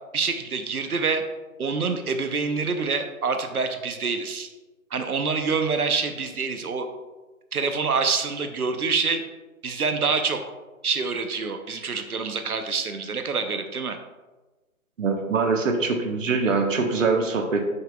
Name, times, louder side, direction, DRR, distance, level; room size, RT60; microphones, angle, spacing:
voice 1, 0.1-1.2 1.6-4.5 4.9-6.9 7.5-9.2 9.6-10.4 10.8-14.0, right 4 dB, 85° right, 6 dB, 0.9 m, -26 dB
voice 2, 15.0-17.7, right 4 dB, 60° right, 3 dB, 1.2 m, -23 dB
8.0 x 5.8 x 2.3 m, 1.2 s
figure-of-eight pair, 150°, 43 cm